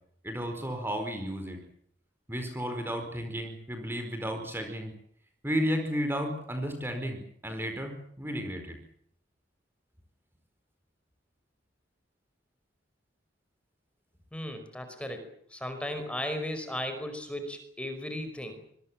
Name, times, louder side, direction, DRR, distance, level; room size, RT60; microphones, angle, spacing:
voice 1, 0.2-1.6 2.3-4.9 5.4-8.8, equal, 10° right, 5 dB, 4.6 m, -33 dB
voice 2, 14.3-18.6, left 1 dB, 5° left, 7 dB, 5.1 m, -36 dB
26.0 x 23.0 x 7.5 m, 0.66 s
head